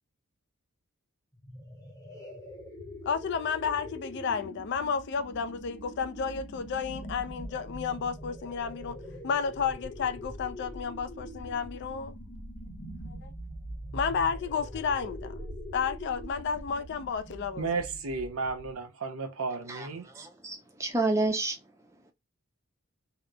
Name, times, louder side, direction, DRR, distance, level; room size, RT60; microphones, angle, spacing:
sound 1, 1.3-18.9, equal, 15° left, 0.8 m, -43 dB
voice 1, 3.1-9.0 9.2-12.1 13.1-13.3 13.9-15.3 15.7-17.7, left 6 dB, 55° left, 0.3 m, -32 dB
voice 2, 17.6-20.1, right 4 dB, 75° right, 0.7 m, -33 dB
voice 3, 19.7-21.6, right 2 dB, 15° right, 0.5 m, -30 dB
2.9 x 2.0 x 2.2 m
head